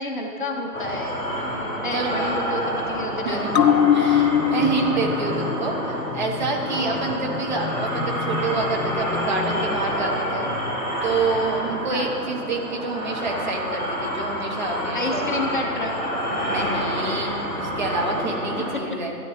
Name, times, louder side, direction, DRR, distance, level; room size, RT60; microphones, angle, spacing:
voice 1, 0.0-3.6 6.9-7.1 11.9-12.1 14.9-15.9, left 2 dB, 30° left, 1 dB, 0.8 m, -30 dB
sound 1, 0.7-18.7, equal, 5° left, 2.1 m, -28 dB
voice 2, 1.9-2.4 3.1-10.5 11.0-15.3 16.5-19.1, right 3 dB, 30° right, 0 dB, 1.1 m, -28 dB
sound 2, 3.5-10.4 10.8-10.9, left 8 dB, 90° left, 0.7 m, -25 dB
12.0 x 10.0 x 4.2 m, 2.4 s
figure-of-eight pair, 145°, 49 cm